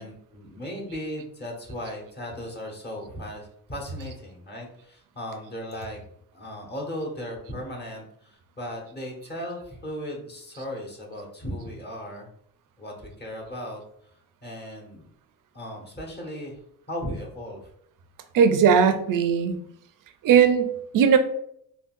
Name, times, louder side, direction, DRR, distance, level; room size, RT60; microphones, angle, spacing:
voice 1, 0.0-6.0 6.3-12.3 12.8-13.8 14.4-15.1 15.5-16.6 16.9-17.6, equal, 25° left, -1 dB, 1.1 m, -36 dB
voice 2, 18.3-19.6 20.2-21.2, right 7 dB, 55° right, 8 dB, 0.5 m, -18 dB
3.7 x 2.4 x 2.5 m, 0.70 s
cardioid pair, 75°, 39 cm